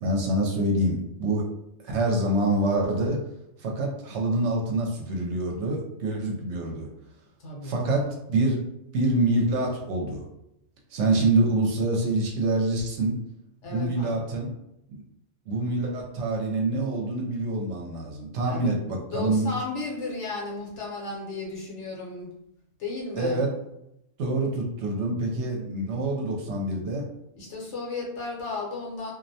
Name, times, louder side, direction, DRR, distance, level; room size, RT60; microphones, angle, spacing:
voice 1, 0.0-1.4 1.8-3.2 3.6-6.9 7.6-8.6 8.9-10.2 10.9-13.1 13.7-14.5 14.9-15.0 15.5-19.5 23.2-23.5 24.2-27.0, right 2 dB, 70° right, 0 dB, 0.8 m, -26 dB
voice 2, 7.4-7.9 13.6-14.2 18.4-18.8 19.1-22.3 22.8-23.4 27.4-29.1, left 3 dB, 70° left, -3 dB, 1.0 m, -34 dB
2.4 x 2.1 x 2.7 m, 0.83 s
omnidirectional pair, 1.3 m